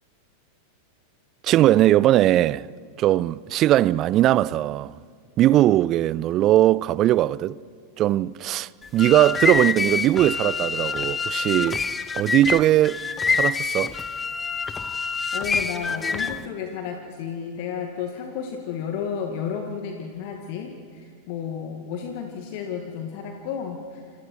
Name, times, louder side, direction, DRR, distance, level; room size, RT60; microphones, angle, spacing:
voice 1, 1.4-2.7 3.0-5.0 5.4-7.6 8.0-11.8 12.1-13.0 13.3-13.9, right 14 dB, 35° right, 0.5 m, -20 dB
sound 1, 8.8-16.5, left 5 dB, 15° left, 0.9 m, -26 dB
voice 2, 15.3-24.0, left 7 dB, 45° left, 2.1 m, -32 dB
29.0 x 27.0 x 4.7 m
figure-of-eight pair, 90°, 0 cm